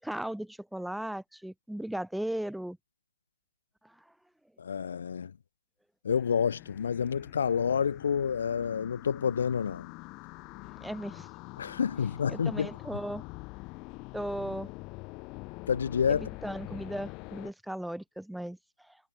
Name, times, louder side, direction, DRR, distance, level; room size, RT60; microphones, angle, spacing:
voice 1, 0.0-2.8 3.8-4.0 10.8-11.3 12.3-13.3 14.1-14.7 16.1-19.0, right 1 dB, ahead, 2.1 m, -37 dB
voice 2, 4.6-5.3 6.0-9.9 11.6-12.7 15.7-16.3, left 7 dB, 55° left, 1.2 m, -29 dB
sound 1, 6.1-17.5, left 26 dB, 25° left, 4.4 m, -45 dB
hypercardioid pair, 150°, 0 cm